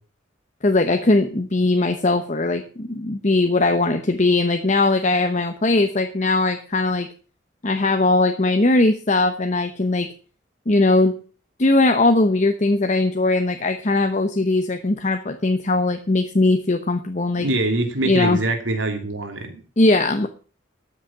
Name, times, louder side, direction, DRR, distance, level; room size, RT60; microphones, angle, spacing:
voice 1, 0.6-7.1 7.6-10.1 10.7-11.2 11.6-17.5 18.0-18.4 19.8-20.3, left 2 dB, 40° left, 6 dB, 0.9 m, -19 dB
voice 2, 17.4-19.6, right 2 dB, 85° right, 5 dB, 2.8 m, -24 dB
13.0 x 6.5 x 7.3 m, 0.38 s
head